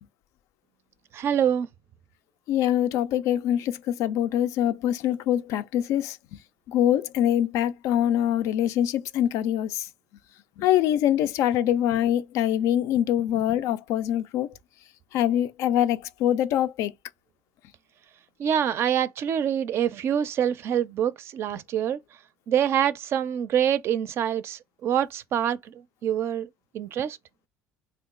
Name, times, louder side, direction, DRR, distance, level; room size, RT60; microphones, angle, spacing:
voice 1, 1.1-1.7 18.4-22.0 22.5-25.7 26.0-26.5 26.7-27.2, right 9 dB, 50° right, 0.4 m, -25 dB
voice 2, 2.5-6.2 6.7-9.9 10.6-14.5 15.1-16.9, left 11 dB, 70° left, 0.4 m, -24 dB
2.9 x 2.3 x 3.6 m
supercardioid pair, 105°, 5 cm